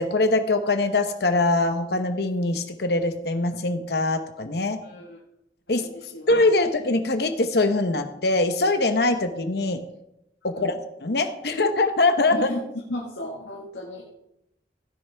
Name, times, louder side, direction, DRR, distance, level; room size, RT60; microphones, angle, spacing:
voice 1, 0.0-4.8 5.7-5.9 6.3-9.8 10.4-10.7 11.0-12.5, left 2 dB, 65° left, 7 dB, 0.9 m, -23 dB
voice 2, 4.8-5.2 5.7-6.7 10.6-10.8 12.3-12.6 12.9-14.1, left 1 dB, 90° left, -2 dB, 1.8 m, -35 dB
16.0 x 10.5 x 3.5 m, 0.84 s
head